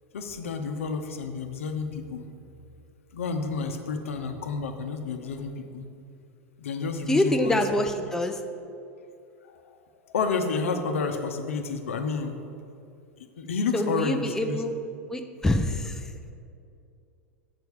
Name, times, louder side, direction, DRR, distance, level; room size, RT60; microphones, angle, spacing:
voice 1, 0.1-2.3 3.1-5.9 6.6-7.6 10.1-12.4 13.4-14.6, left 4 dB, 70° left, 6 dB, 0.8 m, -30 dB
voice 2, 7.1-8.4 13.7-14.7 15.1-16.1, left 1 dB, 5° left, 5 dB, 0.5 m, -25 dB
7.8 x 4.5 x 7.1 m, 2.6 s
figure-of-eight pair, 90°, 8 cm